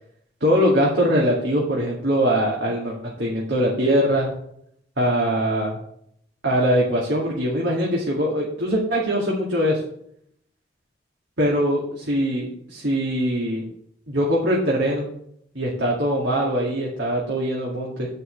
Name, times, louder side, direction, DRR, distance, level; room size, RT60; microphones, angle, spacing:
voice 1, 0.4-4.3 5.0-5.8 6.4-9.8 11.4-13.6 14.1-15.1 15.5-18.1, equal, 85° right, -4 dB, 2.2 m, -22 dB
9.2 x 5.6 x 6.5 m, 0.70 s
head